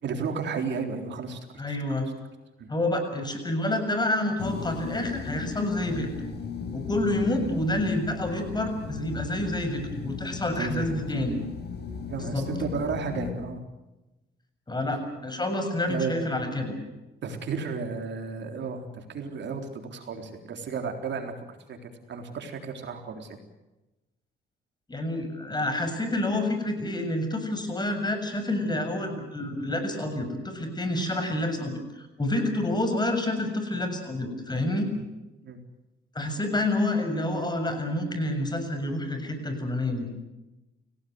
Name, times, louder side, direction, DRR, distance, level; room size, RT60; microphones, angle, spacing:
voice 1, 0.0-1.4 1.7-1.8 2.6-2.7 10.6-10.9 12.1-13.6 14.9-15.0 15.9-16.1 17.2-21.8 22.1-23.4 32.5-32.6 35.4-35.6, right 5 dB, 65° right, 5 dB, 3.8 m, -33 dB
voice 2, 1.6-2.1 2.7-6.3 6.7-11.4 12.3-12.5 14.7-16.8 24.9-34.9 36.2-40.2, left 1 dB, 20° left, 7 dB, 7.1 m, -28 dB
sound 1, 4.4-13.3, left 6 dB, 55° left, 6.3 m, -36 dB
29.5 x 17.5 x 8.0 m, 1.0 s
cardioid pair, 90°, 20 cm